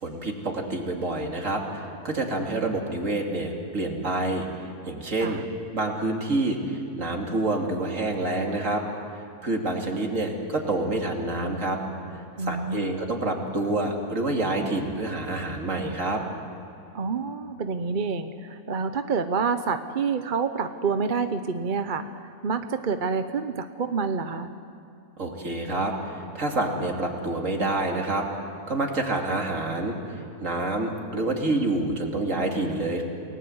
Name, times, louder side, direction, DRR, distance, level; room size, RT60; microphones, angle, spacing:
voice 1, 0.0-4.5 4.9-5.4 5.7-8.8 9.4-11.8 12.4-16.2 25.2-28.3 28.7-33.0, right 2 dB, 55° right, 1 dB, 3.0 m, -27 dB
voice 2, 12.4-12.9 16.9-24.5, right 5 dB, 40° right, 9 dB, 0.8 m, -28 dB
29.0 x 19.0 x 8.0 m, 2.8 s
omnidirectional pair, 1.6 m